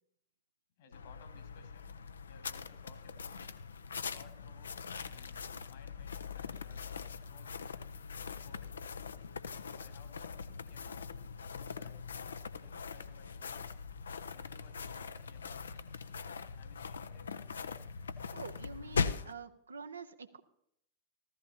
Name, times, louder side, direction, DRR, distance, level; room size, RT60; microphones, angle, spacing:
voice 1, 0.8-2.0 2.3-3.4 4.1-7.8 8.3-8.8 9.4-11.0 11.4-12.0 12.6-13.8 14.3-15.8 16.5-17.3, left 5 dB, 55° left, 7 dB, 1.8 m, -60 dB
sound 1, 0.9-19.3, left 5 dB, 70° left, 0.5 m, -41 dB
voice 2, 18.3-20.4, right 5 dB, 75° right, 10 dB, 0.7 m, -47 dB
14.5 x 14.0 x 2.8 m, 0.73 s
figure-of-eight pair, 90°, 0 cm